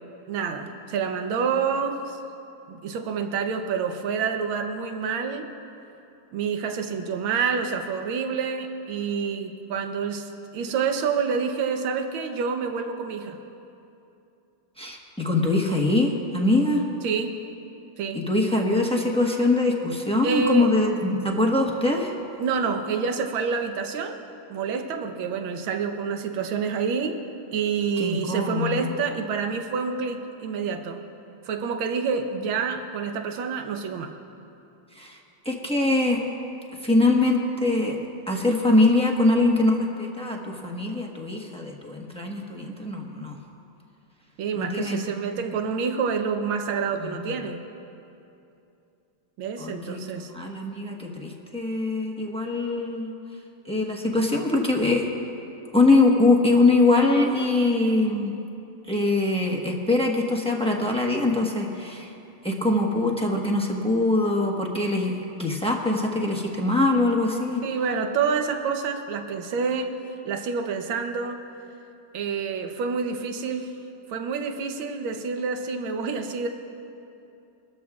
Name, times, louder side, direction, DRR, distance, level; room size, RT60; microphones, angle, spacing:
voice 1, 0.3-2.2 2.7-5.5 6.3-13.4 17.0-17.4 18.0-18.2 20.2-20.7 22.4-24.2 24.5-27.2 27.5-31.0 31.4-34.1 44.4-47.6 49.4-50.3 67.6-69.9 70.2-71.4 72.1-73.7 74.1-76.5, right 5 dB, 80° right, 5 dB, 1.7 m, -28 dB
voice 2, 14.8-16.8 18.1-22.1 28.0-28.9 34.9-35.2 35.4-36.2 36.8-37.9 38.3-43.4 44.6-45.0 47.0-47.3 49.6-53.1 53.6-55.0 55.7-58.3 58.9-62.1 62.4-67.6, left 2 dB, 5° left, -1 dB, 0.7 m, -23 dB
24.0 x 13.5 x 2.4 m, 2.8 s
omnidirectional pair, 2.2 m